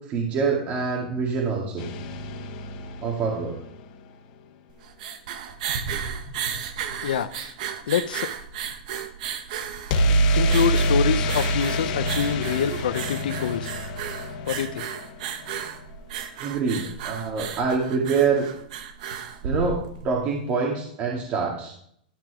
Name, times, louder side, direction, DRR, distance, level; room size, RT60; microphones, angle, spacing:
voice 1, 0.1-1.9 3.0-3.6 16.4-18.5 19.4-21.7, right 5 dB, 35° right, -1 dB, 2.1 m, -25 dB
sound 1, 1.8-3.8 9.9-15.7, right 1 dB, 55° left, 1.6 m, -26 dB
sound 2, 4.7-20.2, right 7 dB, 65° right, 1.4 m, -34 dB
voice 2, 7.0-7.5 7.9-8.3 10.3-13.7 14.5-14.9, left 8 dB, 85° left, 14 dB, 0.6 m, -26 dB
12.5 x 6.1 x 4.9 m, 0.66 s
hypercardioid pair, 135°, 5 cm